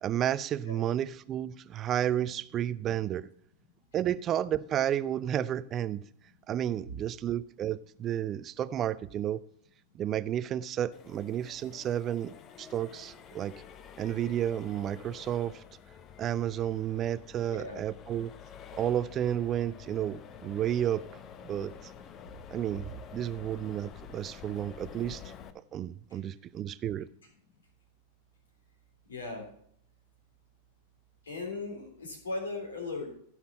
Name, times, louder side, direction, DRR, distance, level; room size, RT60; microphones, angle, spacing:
voice 1, 0.0-3.3 3.9-6.0 6.5-9.4 9.9-13.5 14.0-15.6 16.2-18.3 18.7-21.0 21.4-21.7 22.5-25.2 25.7-27.1, right 10 dB, 30° right, 0.5 m, -31 dB
Accelerating revving vroom, 10.9-25.5, left 8 dB, 30° left, 0.8 m, -49 dB
voice 2, 17.5-17.8 26.1-26.2 29.1-29.5 31.2-33.1, left 3 dB, 70° left, 3.4 m, -37 dB
15.5 x 5.7 x 4.3 m
figure-of-eight pair, 90°, 0 cm